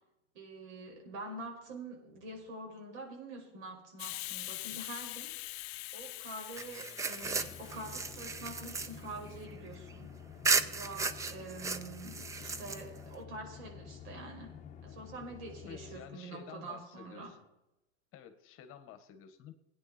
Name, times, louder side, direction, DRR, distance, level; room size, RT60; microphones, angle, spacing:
voice 1, 0.3-5.3 5.9-10.1 10.6-14.5 14.8-17.3, right 2 dB, 75° right, 1 dB, 5.4 m, -46 dB
Hiss, 4.0-9.4, left 21 dB, 65° left, 0.6 m, -44 dB
sound 1, 6.6-10.0 10.4-13.1, right 4 dB, 10° right, 0.4 m, -35 dB
sound 2, 7.2-16.0, left 8 dB, 20° left, 1.3 m, -50 dB
voice 2, 15.6-17.4 18.1-19.5, left 8 dB, 40° left, 9 dB, 1.5 m, -51 dB
18.5 x 9.6 x 4.3 m, 0.91 s
supercardioid pair, 145°, 34 cm